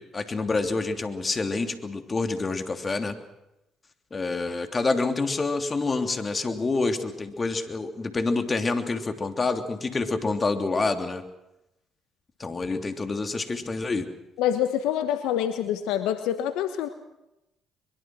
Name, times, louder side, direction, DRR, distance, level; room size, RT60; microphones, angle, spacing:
voice 1, 0.0-3.2 4.1-11.2 12.4-14.1, left 3 dB, 35° left, 6 dB, 3.1 m, -27 dB
voice 2, 14.4-16.9, left 10 dB, 80° left, 9 dB, 1.2 m, -26 dB
23.5 x 23.0 x 6.2 m, 0.89 s
hypercardioid pair, 55°, 0 cm